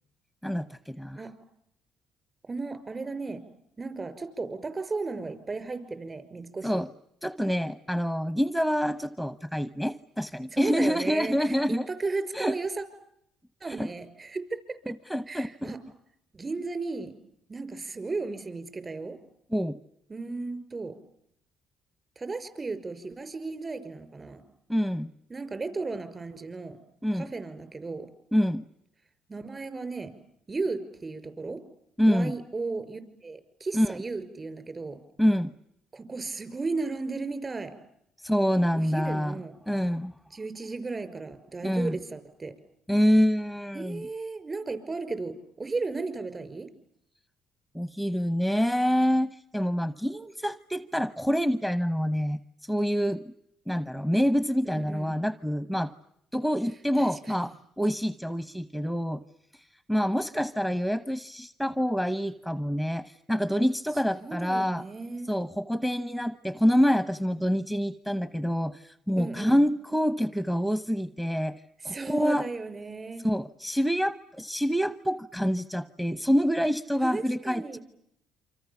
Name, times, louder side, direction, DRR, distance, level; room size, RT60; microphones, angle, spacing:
voice 1, 0.4-1.2 6.6-6.9 7.2-11.9 12.3-12.6 13.8-13.9 15.1-15.7 19.5-19.8 24.7-25.1 27.0-27.3 28.3-28.7 32.0-32.3 33.7-33.9 35.2-35.5 38.2-40.1 41.6-42.0 42.9-44.1 47.7-53.3 53.7-55.9 56.3-59.2 59.5-64.8 65.3-72.5 73.2-77.8, equal, 5° right, 13 dB, 1.0 m, -27 dB
voice 2, 2.4-3.4 3.8-6.8 10.5-12.8 13.6-14.9 15.3-15.8 16.3-17.1 17.5-19.2 20.1-21.0 22.2-24.4 25.3-26.8 27.1-28.1 29.3-30.1 30.5-31.6 32.1-35.0 35.9-37.8 38.7-39.6 40.3-42.6 43.7-46.7 54.6-55.2 56.9-57.5 64.1-65.3 69.2-69.6 71.8-73.3 77.0-77.8, right 3 dB, 30° right, 12 dB, 5.7 m, -35 dB
28.0 x 26.0 x 7.2 m, 0.75 s
supercardioid pair, 80°, 0 cm